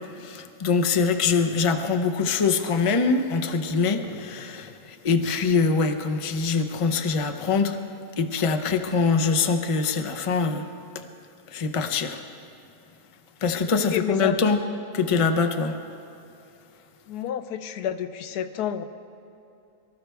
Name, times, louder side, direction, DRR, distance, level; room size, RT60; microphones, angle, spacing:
voice 1, 0.2-7.8 8.2-10.7 10.9-11.0 11.5-12.2 13.4-14.6 14.9-15.7, left 5 dB, 35° left, 7 dB, 0.6 m, -23 dB
voice 2, 13.7-14.4 17.1-18.8, left 9 dB, 90° left, 11 dB, 1.2 m, -30 dB
24.0 x 13.5 x 3.5 m, 2.8 s
omnidirectional pair, 1.6 m